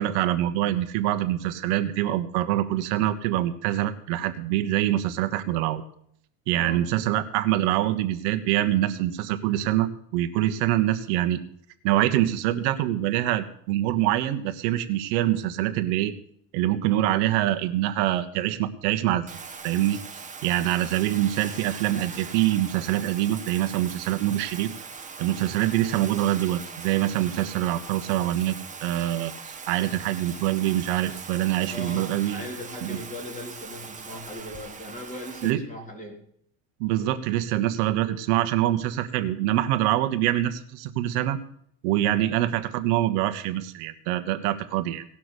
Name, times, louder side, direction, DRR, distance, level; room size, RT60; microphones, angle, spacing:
voice 1, 0.0-5.8 6.5-11.4 11.8-16.1 16.5-24.7 25.2-28.6 28.8-29.3 29.7-32.4 32.8-33.0 35.4-35.6 36.8-41.4 41.8-45.0, right 13 dB, 80° right, 8 dB, 1.3 m, -25 dB
Bathtub (filling or washing), 19.3-35.5, right 5 dB, 15° right, 1.3 m, -41 dB
voice 2, 31.7-36.2, left 1 dB, 15° left, 1 dB, 3.5 m, -39 dB
18.0 x 6.1 x 8.0 m, 0.66 s
supercardioid pair, 125°, 47 cm